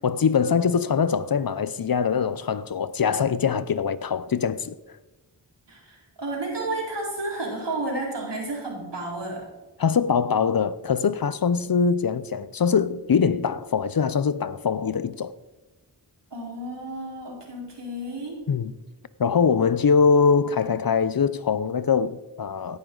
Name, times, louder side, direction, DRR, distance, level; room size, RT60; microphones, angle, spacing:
voice 1, 0.0-4.8 9.8-15.3 18.5-18.7 19.2-22.8, left 6 dB, 60° left, 0.6 m, -23 dB
voice 2, 5.7-9.5 16.3-18.4, right 2 dB, 80° right, 4.2 m, -32 dB
17.0 x 11.0 x 3.9 m
wide cardioid pair, 75°, 41 cm